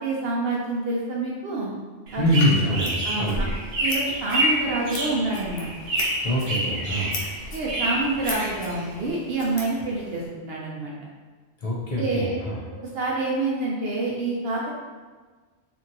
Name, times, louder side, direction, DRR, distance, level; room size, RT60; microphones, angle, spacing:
voice 1, 0.0-1.7 2.1-2.6 3.0-3.3 3.8-5.7 7.5-10.9 12.0-12.4 12.9-14.7, right 2 dB, 65° right, -4 dB, 0.7 m, -27 dB
sound 1, 2.1-9.1, right 1 dB, 85° right, 1.1 m, -28 dB
voice 2, 2.2-3.5 6.2-7.2 11.6-12.6, equal, 50° left, -5 dB, 0.4 m, -24 dB
Scissors, 2.3-10.3, left 2 dB, 90° left, 1.0 m, -40 dB
2.8 x 2.6 x 2.6 m, 1.4 s
omnidirectional pair, 1.2 m